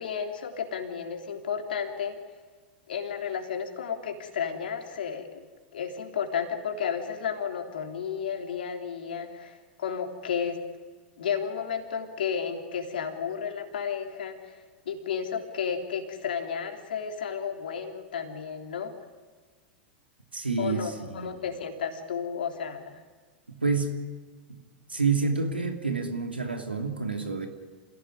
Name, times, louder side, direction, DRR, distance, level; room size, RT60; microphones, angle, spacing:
voice 1, 0.0-2.2 2.9-5.4 5.7-10.6 11.2-14.6 14.8-18.9 20.6-23.0, left 7 dB, 70° left, 5 dB, 3.3 m, -32 dB
voice 2, 20.3-21.4 23.5-24.0 24.5-24.6 24.9-27.5, right 4 dB, 85° right, 5 dB, 2.8 m, -28 dB
27.5 x 16.5 x 9.7 m, 1.4 s
figure-of-eight pair, 90°, 5 cm